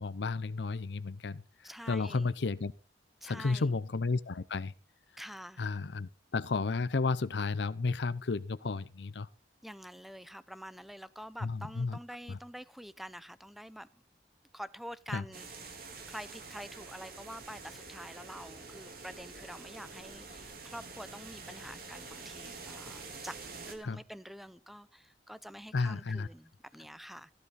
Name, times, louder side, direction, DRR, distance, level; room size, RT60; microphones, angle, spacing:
voice 1, 0.0-1.4 1.9-2.7 3.2-4.7 5.6-9.3 11.4-12.0 12.3-12.4 15.1-15.2 23.8-24.0 25.7-26.3, left 4 dB, 75° left, 0.6 m, -32 dB
voice 2, 1.6-2.3 3.2-3.7 5.2-5.6 9.6-13.9 14.5-27.3, equal, ahead, 0.5 m, -47 dB
sound 1, 15.3-23.7, right 4 dB, 55° right, 3.4 m, -47 dB
16.0 x 11.0 x 4.1 m
head